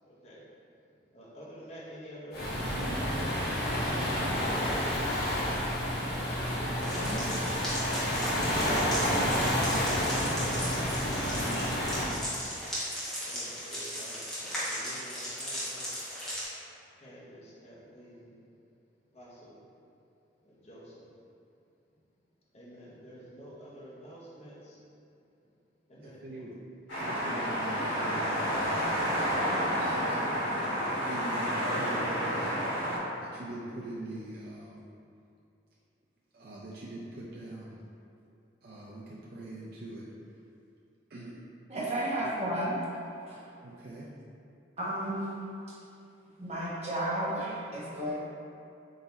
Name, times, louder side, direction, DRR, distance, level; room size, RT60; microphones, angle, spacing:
voice 1, 0.1-0.5 1.1-3.2 6.0-7.3 8.1-9.5 10.2-12.3 13.2-16.1 17.0-18.3 19.1-19.6 20.4-21.1 22.5-24.8 25.9-26.5, equal, 35° left, -6 dB, 0.7 m, -49 dB
Waves surf, 2.3-12.1, equal, 60° left, 1.2 m, -29 dB
sound 1, 6.8-16.4, equal, 5° left, 1.0 m, -37 dB
voice 2, 26.0-26.6 26.9-32.5 33.2-34.8 36.3-37.8 38.6-40.1 41.1-41.4 42.2-42.3 43.6-44.1, right 1 dB, 55° right, -6 dB, 0.4 m, -43 dB
sound 2, 26.9-33.0, equal, 80° left, 1.2 m, -30 dB
voice 3, 41.7-42.8 43.3-43.5 44.8-45.3 45.7-45.8 46.4-48.2, right 1 dB, 35° right, -7 dB, 0.9 m, -32 dB
3.8 x 2.7 x 3.9 m, 2.6 s
head